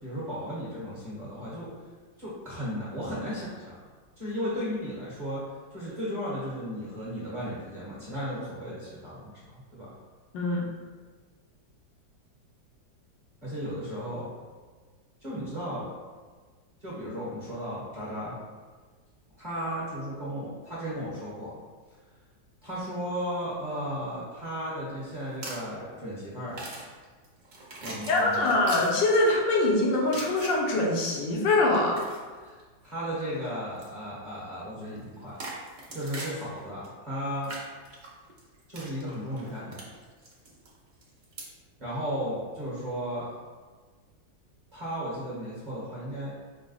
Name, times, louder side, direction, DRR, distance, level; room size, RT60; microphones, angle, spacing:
voice 1, 0.0-1.7 2.2-3.8 4.2-5.4 5.7-9.9 13.4-14.3 15.2-15.8 16.8-18.3 19.4-21.6 22.6-26.6 27.8-28.5 32.4-32.6 32.8-35.4 35.9-37.5 38.7-39.8 41.8-43.3 44.7-46.3, equal, 30° right, -9 dB, 1.0 m, -35 dB
voice 2, 10.3-10.7 28.1-32.0, left 2 dB, 75° left, -2 dB, 1.4 m, -24 dB
sound 1, 25.1-25.7 26.4-29.4 30.1-30.8 31.5-32.6 33.1-33.5 33.8-33.9 34.9-36.9 37.2-41.5, right 2 dB, 70° right, 0.4 m, -42 dB
4.7 x 2.1 x 3.9 m, 1.4 s
omnidirectional pair, 2.0 m